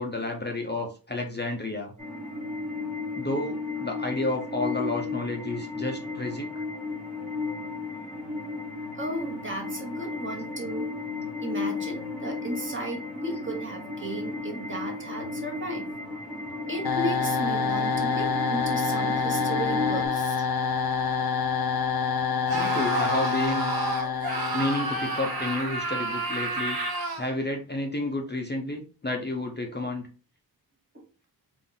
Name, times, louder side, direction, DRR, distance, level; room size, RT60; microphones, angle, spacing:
voice 1, 0.0-1.9 3.2-6.6 22.5-23.7 24.5-26.8 27.2-30.1, left 2 dB, 25° left, 1 dB, 0.6 m, -31 dB
sound 1, 2.0-20.1, left 3 dB, ahead, 1.3 m, -34 dB
voice 2, 9.0-10.9 11.4-15.9 16.7-20.4, right 1 dB, 30° right, 1 dB, 1.1 m, -34 dB
sound 2, 16.8-25.8, left 5 dB, 65° left, 0.5 m, -27 dB
Screaming, 22.5-27.3, right 3 dB, 60° right, 1.2 m, -30 dB
4.0 x 2.5 x 3.8 m, 0.36 s
wide cardioid pair, 100°, 41 cm